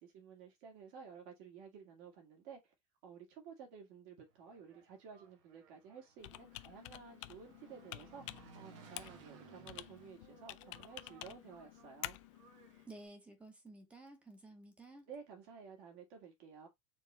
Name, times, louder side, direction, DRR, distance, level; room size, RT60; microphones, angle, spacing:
voice 1, 0.0-2.7 3.0-12.2 15.1-16.7, right 6 dB, 50° right, 2.1 m, -54 dB
Engine, 4.3-13.1, right 8 dB, 85° right, 1.4 m, -61 dB
Computer keyboard, 6.2-12.9, left 17 dB, 80° left, 0.4 m, -50 dB
voice 2, 12.9-15.1, right 2 dB, 10° right, 0.9 m, -54 dB
4.5 x 3.7 x 3.1 m
cardioid pair, 180°, 15 cm